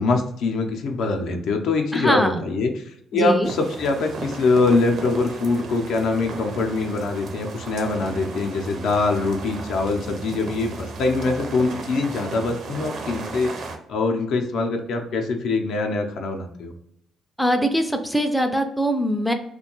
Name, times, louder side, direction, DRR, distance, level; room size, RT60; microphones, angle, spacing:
voice 1, 0.0-13.5 13.9-16.7, left 3 dB, 75° left, 3 dB, 0.5 m, -23 dB
voice 2, 1.9-2.4 3.1-3.5 17.4-19.3, equal, ahead, 5 dB, 0.3 m, -22 dB
sound 1, 3.4-13.8, right 3 dB, 60° right, 0.5 m, -35 dB
2.6 x 2.2 x 2.9 m, 0.75 s
cardioid pair, 115°, 0 cm